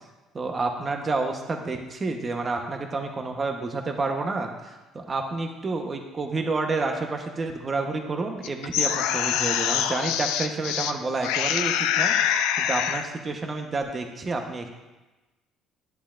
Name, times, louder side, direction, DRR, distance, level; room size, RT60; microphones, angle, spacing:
voice 1, 0.3-14.7, right 3 dB, 30° right, 3 dB, 1.0 m, -29 dB
sound 1, 8.4-10.9 11.2-13.1, left 9 dB, 85° left, 0.4 m, -25 dB
10.5 x 8.0 x 2.5 m, 1.1 s
supercardioid pair, 90°, 0 cm